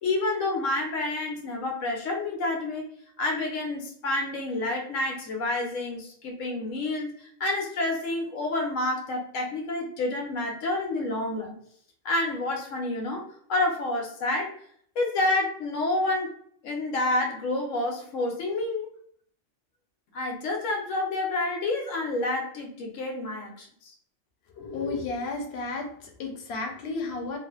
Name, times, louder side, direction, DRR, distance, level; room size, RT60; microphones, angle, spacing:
voice 1, 0.0-2.9 3.2-11.6 12.0-14.5 15.0-16.3 16.6-18.9 20.1-23.9, left 2 dB, 90° left, 1 dB, 1.1 m, -29 dB
voice 2, 24.5-27.4, left 3 dB, 65° left, 2 dB, 0.8 m, -33 dB
2.5 x 2.4 x 2.3 m, 0.62 s
omnidirectional pair, 1.3 m